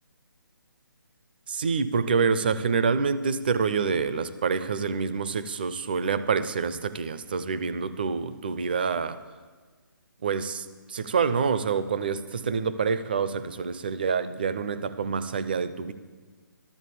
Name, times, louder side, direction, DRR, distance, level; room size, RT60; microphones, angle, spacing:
voice 1, 1.5-9.2 10.2-15.9, right 5 dB, 25° right, 0.4 m, -27 dB
12.5 x 7.0 x 8.2 m
hypercardioid pair, 170°, 12 cm